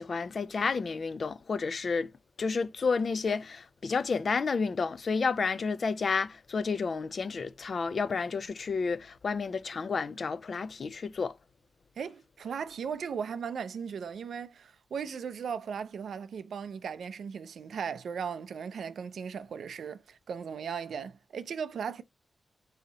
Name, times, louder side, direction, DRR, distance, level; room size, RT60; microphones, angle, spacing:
voice 1, 0.0-2.1 2.4-11.4, left 4 dB, 60° left, 0.3 m, -31 dB
voice 2, 12.0-22.0, right 6 dB, 85° right, 0.4 m, -37 dB
4.0 x 2.7 x 3.9 m
cardioid pair, 70°, 0 cm